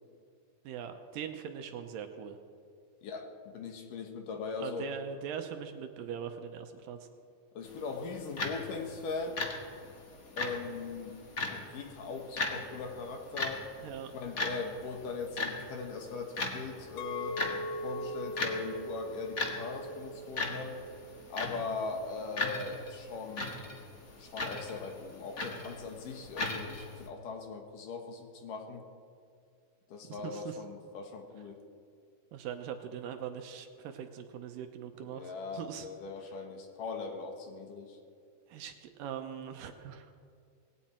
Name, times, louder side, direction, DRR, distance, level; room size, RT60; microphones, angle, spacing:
voice 1, 0.6-2.4 4.6-7.0 13.8-14.1 30.1-30.6 32.3-35.9 38.5-40.1, right 8 dB, 75° right, 6 dB, 2.4 m, -41 dB
voice 2, 3.0-4.9 7.5-9.4 10.4-11.2 11.5-13.6 14.1-17.4 17.8-20.8 21.3-23.5 24.2-28.8 29.9-31.6 35.1-38.0, left 4 dB, 65° left, 4 dB, 2.8 m, -40 dB
sound 1, 7.6-27.1, left 3 dB, 45° left, 1.1 m, -39 dB
Chink clink, 17.0-22.2, equal, 90° left, 2.8 m, -41 dB
19.0 x 17.0 x 4.4 m, 2.3 s
omnidirectional pair, 4.3 m